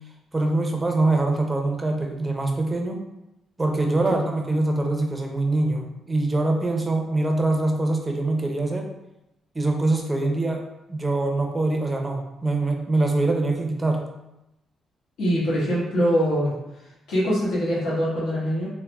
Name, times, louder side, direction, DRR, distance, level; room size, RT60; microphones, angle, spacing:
voice 1, 0.3-3.0 3.6-8.9 9.5-10.6 10.9-14.0, right 2 dB, 20° right, 2 dB, 0.5 m, -24 dB
voice 2, 15.2-16.5 17.1-18.7, equal, 85° left, -8 dB, 1.2 m, -23 dB
3.2 x 2.1 x 2.3 m, 0.90 s
cardioid pair, 90°, 0 cm